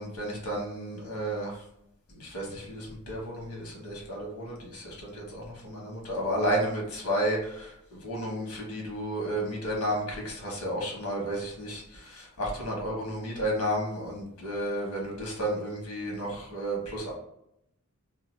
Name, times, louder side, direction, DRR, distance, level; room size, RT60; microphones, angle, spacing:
voice 1, 0.0-1.6 2.1-17.1, right 1 dB, 90° left, -2 dB, 1.2 m, -32 dB
2.7 x 2.2 x 3.1 m, 0.79 s
head